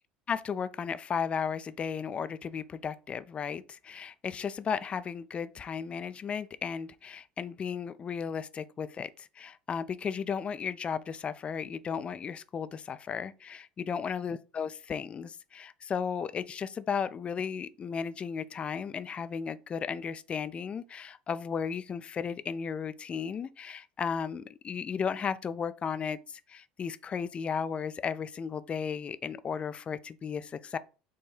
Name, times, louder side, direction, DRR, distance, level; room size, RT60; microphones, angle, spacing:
voice 1, 0.3-30.8, left 6 dB, 35° left, 0.4 m, -35 dB
4.8 x 2.2 x 4.3 m
hypercardioid pair, 80°, 4 cm